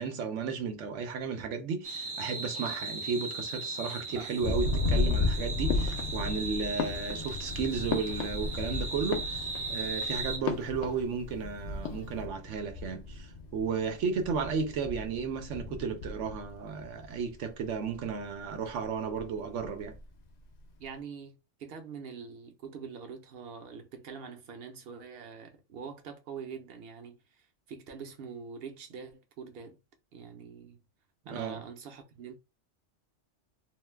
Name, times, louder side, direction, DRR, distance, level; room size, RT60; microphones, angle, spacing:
voice 1, 0.0-20.0 31.3-31.6, right 5 dB, 90° right, 1.0 m, -34 dB
sound 1, 1.8-10.4, right 3 dB, 35° right, 0.4 m, -38 dB
Thunder, 4.4-17.3 17.6-18.2 18.5-20.0, left 2 dB, 55° left, 0.4 m, -35 dB
sound 2, 5.7-6.4 6.8-8.7 9.0-9.8 10.4-11.4 11.7-12.3, left 9 dB, 75° left, 0.9 m, -38 dB
voice 2, 20.8-29.8 30.1-30.8 31.3-32.4, right 6 dB, 60° right, 0.8 m, -44 dB
2.5 x 2.2 x 3.2 m
omnidirectional pair, 1.2 m